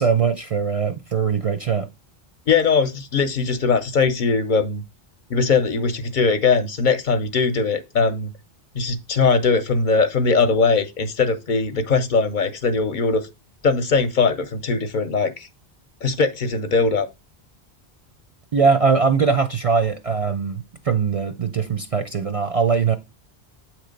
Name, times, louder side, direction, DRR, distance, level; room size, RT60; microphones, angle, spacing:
voice 1, 0.0-1.9 18.5-23.0, right 5 dB, 45° right, 0.5 m, -21 dB
voice 2, 2.5-4.8 5.3-8.3 8.8-13.3 13.6-15.5 16.0-17.1, left 4 dB, 55° left, 0.8 m, -20 dB
8.1 x 3.0 x 5.1 m
omnidirectional pair, 1.1 m